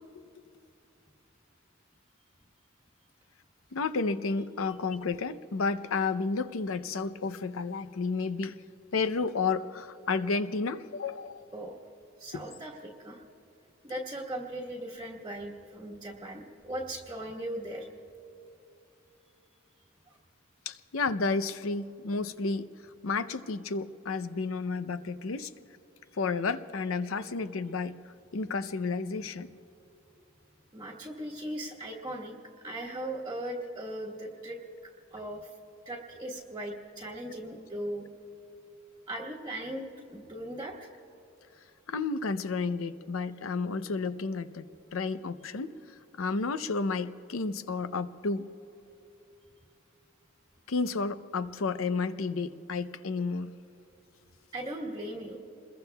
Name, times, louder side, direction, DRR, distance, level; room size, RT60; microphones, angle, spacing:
voice 1, 3.7-8.6 8.9-11.5 12.3-12.4 20.7-22.7 23.0-25.5 26.1-29.5 41.9-44.7 44.9-48.5 50.7-53.5, left 4 dB, 80° left, 13 dB, 0.6 m, -31 dB
voice 2, 12.2-13.2 13.8-17.9 30.7-32.3 32.6-35.5 35.8-38.1 39.1-40.9 54.5-55.4, right 1 dB, 20° right, -3 dB, 1.3 m, -38 dB
28.0 x 22.0 x 2.3 m, 2.9 s
head